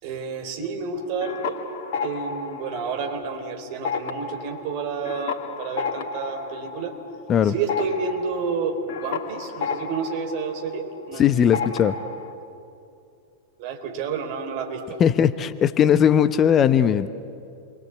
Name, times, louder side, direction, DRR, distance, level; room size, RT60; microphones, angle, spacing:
voice 1, 0.0-1.6 2.0-7.0 7.4-11.4 13.6-15.0, right 5 dB, 45° right, 4 dB, 4.1 m, -30 dB
sound 1, 1.0-3.4 3.7-11.2 11.5-12.3, left 5 dB, 50° left, 2.6 m, -32 dB
voice 2, 11.2-11.9 15.0-17.1, left 9 dB, 25° left, 12 dB, 0.9 m, -18 dB
28.5 x 23.0 x 8.5 m, 2.6 s
figure-of-eight pair, 90°, 0 cm